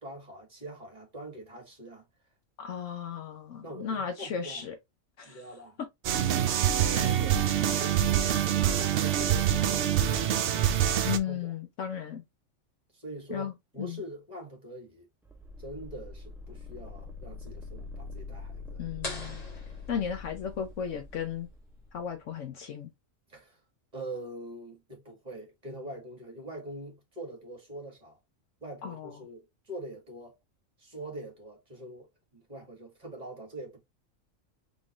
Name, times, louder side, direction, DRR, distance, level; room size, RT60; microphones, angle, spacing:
voice 1, 0.0-2.0 3.6-4.7 5.2-5.8 6.7-10.1 11.2-11.5 12.9-15.1 15.6-18.8 23.3-23.6 23.9-28.1 28.6-30.3 30.8-33.8, right 1 dB, 30° right, 1.8 m, -43 dB
voice 2, 2.6-4.8 5.2-5.4 6.9-7.2 11.1-12.2 13.3-13.5 13.8-14.0 18.8-19.4 19.9-21.5 21.9-22.9 28.8-29.2, left 7 dB, 70° left, 1.1 m, -35 dB
sound 1, 6.0-11.2, right 10 dB, 65° right, 0.9 m, -25 dB
sound 2, 15.2-21.9, left 4 dB, 5° right, 0.4 m, -44 dB
sound 3, 19.0-20.7, left 2 dB, 30° left, 1.5 m, -42 dB
3.8 x 3.8 x 2.9 m
omnidirectional pair, 1.3 m